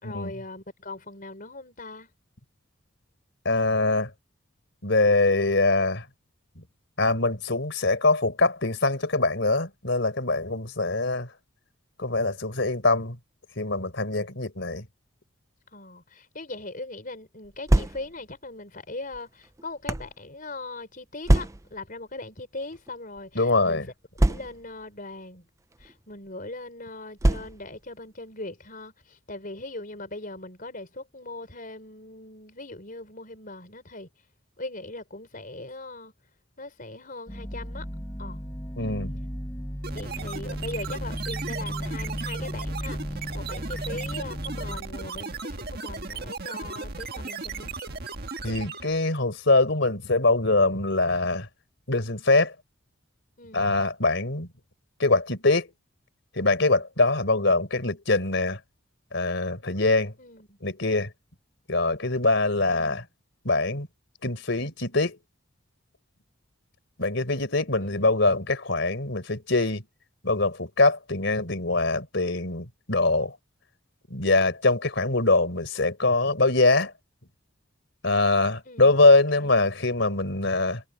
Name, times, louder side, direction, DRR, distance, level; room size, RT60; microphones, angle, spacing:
voice 1, 0.0-2.1 15.7-23.9 24.3-25.5 25.8-34.1 34.6-36.1 36.6-37.9 38.2-38.4 39.9-47.7 53.4-53.7 60.2-60.6 62.7-63.1 67.8-68.1 78.6-79.0 79.3-79.5, left 2 dB, 45° left, 5.0 m, -40 dB
voice 2, 3.4-4.1 4.8-6.1 6.6-6.7 7.0-11.3 12.0-13.2 13.6-14.8 23.3-23.9 38.8-39.2 48.4-51.5 51.9-52.5 53.5-54.5 55.0-55.7 56.3-58.6 59.1-60.1 60.6-61.1 61.7-63.0 63.4-63.9 64.2-65.2 67.0-69.8 70.2-73.4 74.1-76.9 78.0-80.8, left 2 dB, 60° left, 4.4 m, -23 dB
sound 1, 17.4-18.3 19.1-20.1 21.2-21.9 22.7-22.9 23.2-23.3 24.2-24.8 25.7-25.9 27.2-27.8, right 1 dB, 15° right, 0.5 m, -24 dB
sound 2, 37.3-44.8, equal, 15° left, 4.0 m, -35 dB
sound 3, 39.8-49.0, right 4 dB, 50° right, 1.6 m, -36 dB
head